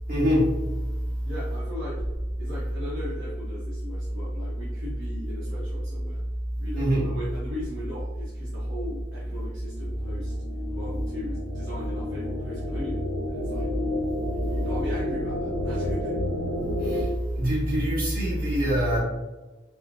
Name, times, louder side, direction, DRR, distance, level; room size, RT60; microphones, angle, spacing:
voice 1, 0.1-0.6 6.7-7.1 16.8-19.0, equal, 50° right, -7 dB, 1.5 m, -24 dB
voice 2, 1.2-2.0 2.4-6.2 6.6-10.3 10.7-13.7 14.3-16.2, left 1 dB, 80° right, -7 dB, 0.9 m, -39 dB
sound 1, 9.4-17.0, left 1 dB, 75° left, 0.5 m, -30 dB
4.2 x 2.1 x 2.6 m, 1.1 s
head